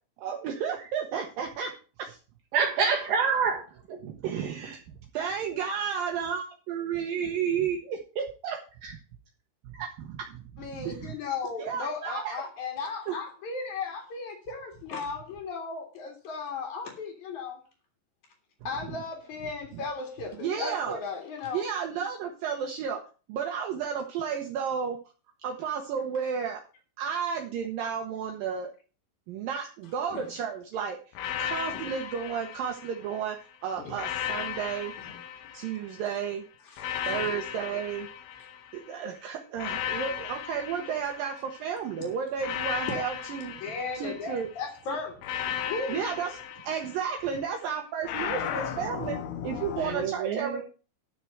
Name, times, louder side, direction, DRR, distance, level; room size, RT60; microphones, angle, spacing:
voice 1, 0.2-1.7 2.0-2.2 2.8-2.9 4.0-4.8 5.1-9.0 9.6-11.1 11.6-12.4 13.1-13.2 18.9-19.0 19.7-19.8 20.4-21.0 21.5-23.0 23.3-25.0 25.4-26.6 27.0-28.7 29.3-34.9 35.5-36.4 37.0-38.1 38.7-44.5 45.5-45.6 45.9-49.2 49.4-50.6, right 7 dB, 85° right, 3 dB, 2.0 m, -32 dB
voice 2, 2.5-4.0 49.8-50.6, right 6 dB, 65° right, -2 dB, 4.1 m, -27 dB
voice 3, 10.6-17.6 18.6-21.6 30.1-30.3 31.7-31.8 33.8-34.0 35.0-35.2 36.7-37.3 43.6-45.2 45.7-46.0, left 4 dB, 50° left, 0 dB, 2.7 m, -36 dB
sound 1, 31.1-33.3 33.9-36.1 36.8-38.9 39.6-41.7 42.4-44.5 45.2-47.4 48.0-50.1, left 9 dB, 75° left, 3.3 m, -36 dB
12.5 x 4.6 x 7.7 m, 0.36 s
omnidirectional pair, 5.6 m